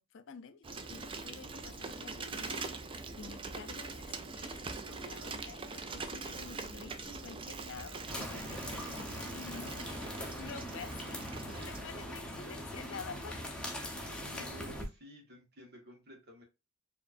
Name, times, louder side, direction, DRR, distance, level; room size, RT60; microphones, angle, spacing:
voice 1, 0.0-2.7 3.2-13.5, left 5 dB, 65° left, 0.5 m, -49 dB
Bicycle, 0.6-11.8, right 3 dB, 25° right, 0.4 m, -43 dB
sound 1, 8.1-14.8, left 1 dB, 5° left, 0.8 m, -41 dB
voice 2, 8.3-8.7 9.5-9.6 14.2-16.4, equal, 50° right, 1.5 m, -53 dB
4.7 x 3.0 x 2.5 m
head